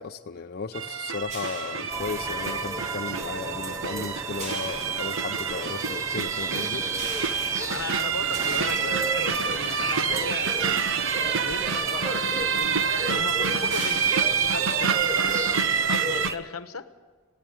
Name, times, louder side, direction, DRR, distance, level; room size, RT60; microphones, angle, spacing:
voice 1, 0.0-6.9, left 4 dB, 45° left, 5 dB, 0.6 m, -35 dB
sound 1, 0.7-16.3, right 6 dB, 65° right, 0.9 m, -27 dB
sound 2, 1.3-2.7 4.4-5.7 7.0-11.4 12.4-12.5 12.8-13.0 13.7-15.7, right 1 dB, 35° right, 3.7 m, -41 dB
sound 3, 1.9-16.4, right 2 dB, 15° right, 0.7 m, -35 dB
voice 2, 7.6-15.4 15.9-17.0, left 4 dB, 85° left, 11 dB, 1.1 m, -37 dB
20.0 x 16.5 x 9.1 m, 1.5 s
head